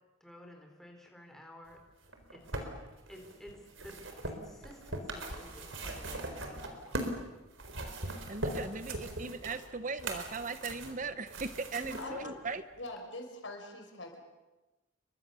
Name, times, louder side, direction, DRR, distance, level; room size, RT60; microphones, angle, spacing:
voice 1, 0.2-1.8 2.3-2.7 3.1-7.3 11.7-12.2, equal, ahead, 2 dB, 4.2 m, -52 dB
sound 1, 2.0-7.2 7.5-12.1 12.9-13.0, right 2 dB, 70° right, 4.2 m, -40 dB
voice 2, 8.3-12.6, right 4 dB, 40° right, 12 dB, 0.9 m, -39 dB
voice 3, 12.0-12.4 12.8-14.2, left 2 dB, 65° left, 3 dB, 5.6 m, -43 dB
30.0 x 24.0 x 6.9 m, 1.1 s
head